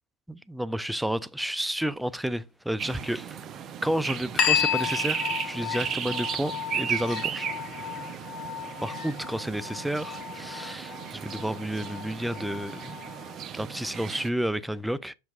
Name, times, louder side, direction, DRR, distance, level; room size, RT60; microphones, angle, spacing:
voice 1, 0.3-3.3 3.8-7.5 7.7-8.0 8.8-13.0 13.5-15.1, right 1 dB, 5° right, 0.4 m, -31 dB
sound 1, 2.8-14.3, right 8 dB, 30° right, 0.8 m, -35 dB
sound 2, 4.4-13.4, left 8 dB, 35° left, 2.0 m, -33 dB
7.4 x 5.8 x 2.5 m
figure-of-eight pair, 90°, 0 cm